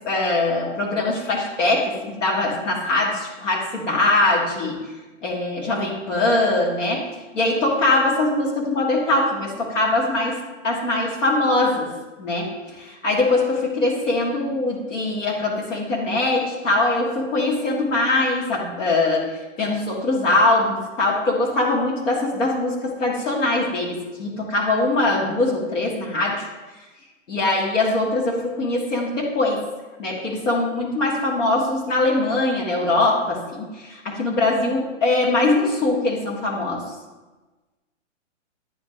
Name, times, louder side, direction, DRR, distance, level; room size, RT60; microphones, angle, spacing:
voice 1, 0.0-4.9 5.2-7.0 7.3-10.4 10.6-11.9 12.2-26.5 27.3-29.6 30.0-36.8, left 2 dB, 75° left, -2 dB, 1.8 m, -22 dB
10.0 x 4.7 x 2.4 m, 1.2 s
hypercardioid pair, 175°, 38 cm